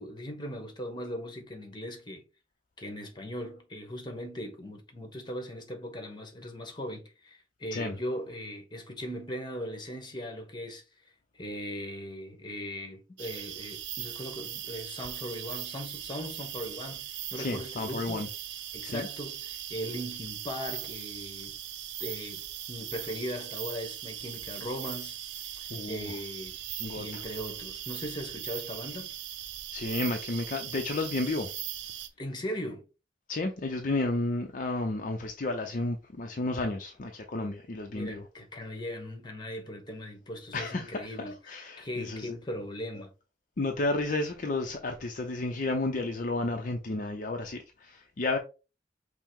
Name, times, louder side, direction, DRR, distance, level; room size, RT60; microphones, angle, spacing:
voice 1, 0.0-2.2 2.8-10.8 11.3-18.3 18.7-21.6 22.0-26.6 26.9-29.1 32.2-32.9 37.9-43.1, equal, 25° left, 1.1 m, -39 dB
sound 1, 13.2-32.1, right 11 dB, 70° right, 0.6 m, -39 dB
voice 2, 17.4-18.3 18.9-19.1 25.7-26.2 26.8-27.2 29.7-31.5 33.3-38.2 40.5-42.4 43.6-48.4, left 2 dB, 45° left, 0.5 m, -32 dB
5.5 x 2.1 x 4.6 m
head